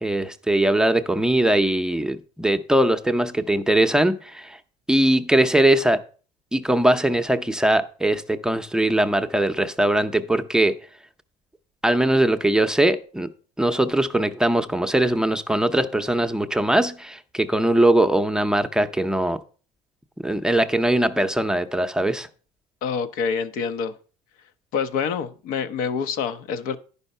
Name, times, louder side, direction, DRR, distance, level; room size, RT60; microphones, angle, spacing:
voice 1, 0.0-4.6 4.9-6.0 6.5-10.8 11.8-13.3 13.6-19.4 20.2-22.3, right 1 dB, 5° right, 0.6 m, -21 dB
voice 2, 22.8-23.9 24.7-26.8, left 6 dB, 75° left, 0.8 m, -26 dB
9.8 x 5.5 x 5.4 m
supercardioid pair, 100°, 14 cm